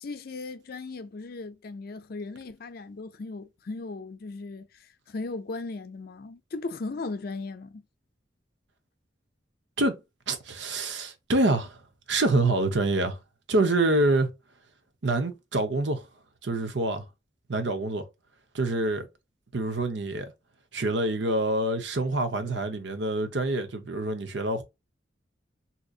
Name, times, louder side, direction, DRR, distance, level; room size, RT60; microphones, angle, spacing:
voice 1, 0.0-7.8, left 3 dB, 55° left, 0.5 m, -37 dB
voice 2, 10.3-11.8 12.1-13.2 13.5-14.3 15.0-16.0 16.4-17.1 17.5-18.1 18.5-19.1 19.5-20.3 20.7-24.6, right 2 dB, 75° right, 0.8 m, -26 dB
3.7 x 2.8 x 2.4 m
head